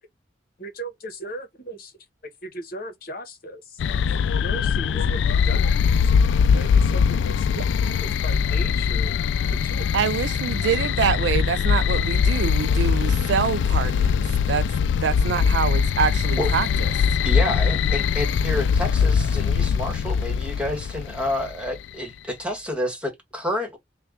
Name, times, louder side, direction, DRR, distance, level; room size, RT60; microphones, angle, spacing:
voice 1, 0.6-2.1 2.4-3.8 4.1-6.2 6.5-7.5 8.0-9.2 9.5-9.9, right 1 dB, 55° left, 1.1 m, -38 dB
sound 1, 3.8-21.7, left 6 dB, 85° left, 0.3 m, -22 dB
voice 2, 9.9-14.6 15.0-16.9, right 7 dB, 80° right, 0.4 m, -25 dB
voice 3, 17.2-23.8, left 1 dB, 5° right, 1.6 m, -29 dB
3.3 x 2.3 x 3.6 m
head